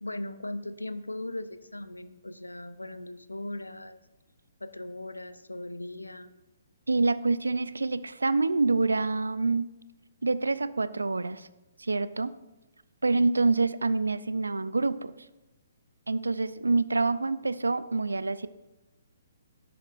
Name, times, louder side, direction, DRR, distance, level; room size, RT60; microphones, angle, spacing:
voice 1, 0.0-4.0 4.6-6.3, left 1 dB, 85° left, 13 dB, 0.5 m, -38 dB
voice 2, 6.9-9.7 10.2-11.5 11.8-12.4 13.0-15.1 16.1-18.5, right 3 dB, 75° right, 16 dB, 0.4 m, -26 dB
11.0 x 7.8 x 2.5 m, 1.1 s
figure-of-eight pair, 130°, 0 cm